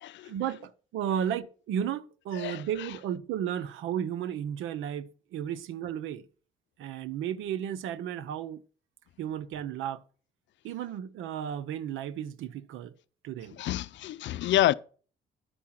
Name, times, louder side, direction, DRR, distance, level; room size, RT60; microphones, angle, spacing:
voice 1, 0.2-6.3 6.8-8.6 9.2-10.0 10.6-12.9 13.2-13.6, right 9 dB, 80° right, 0.7 m, -34 dB
voice 2, 13.6-14.7, left 13 dB, 65° left, 0.5 m, -27 dB
11.0 x 4.7 x 5.8 m
cardioid pair, 75°, 20 cm